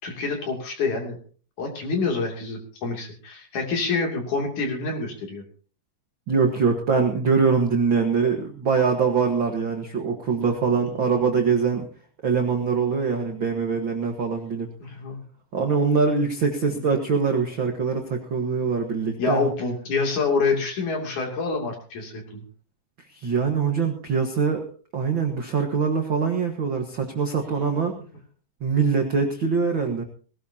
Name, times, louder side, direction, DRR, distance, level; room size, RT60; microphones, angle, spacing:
voice 1, 0.0-1.2 1.6-5.4 10.8-10.9 14.8-15.2 19.2-22.4, left 4 dB, 50° left, 2 dB, 4.0 m, -27 dB
voice 2, 6.3-11.9 12.2-14.7 15.5-19.5 23.1-24.6 24.9-27.9 28.6-30.0, right 5 dB, 55° right, 3 dB, 1.3 m, -23 dB
20.0 x 17.0 x 2.9 m, 0.40 s
omnidirectional pair, 4.6 m